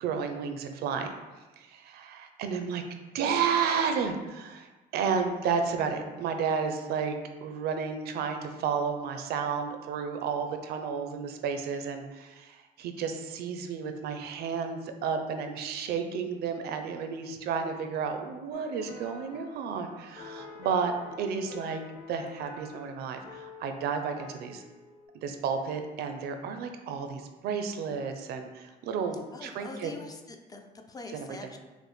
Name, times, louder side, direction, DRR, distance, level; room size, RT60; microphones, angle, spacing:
voice 1, 0.0-1.1 1.6-2.8 3.1-7.2 7.4-21.8 22.1-24.6 25.2-29.9 31.1-31.4, right 6 dB, 70° right, 6 dB, 0.5 m, -32 dB
sound 1, 18.5-25.1, left 4 dB, 85° left, 0.9 m, -48 dB
voice 2, 29.3-31.6, left 3 dB, 20° left, 4 dB, 0.4 m, -44 dB
5.1 x 2.1 x 3.1 m, 1.2 s
cardioid pair, 110°, 17 cm